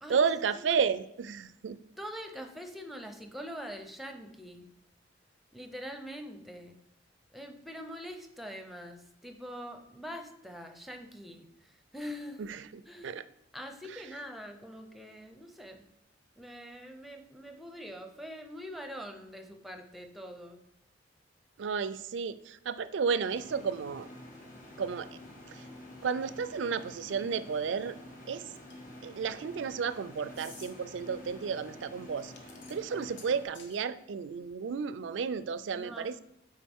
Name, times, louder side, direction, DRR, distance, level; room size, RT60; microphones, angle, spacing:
voice 1, 0.1-1.8 12.4-13.2 13.9-14.0 21.6-24.1 24.8-25.1 26.0-28.0 28.3-28.4 29.0-32.3 32.7-36.2, right 6 dB, 80° right, 14 dB, 0.4 m, -32 dB
voice 2, 2.0-4.7 5.5-6.8 7.3-12.4 12.9-13.2 13.5-15.8 16.4-20.6 35.7-36.2, equal, ahead, 5 dB, 0.6 m, -44 dB
sound 1, 23.2-33.5, left 1 dB, 45° left, 1.6 m, -49 dB
sound 2, 28.6-28.9 30.3-30.7 32.2-33.8, left 4 dB, 75° left, 1.0 m, -52 dB
8.5 x 4.6 x 3.6 m, 0.77 s
head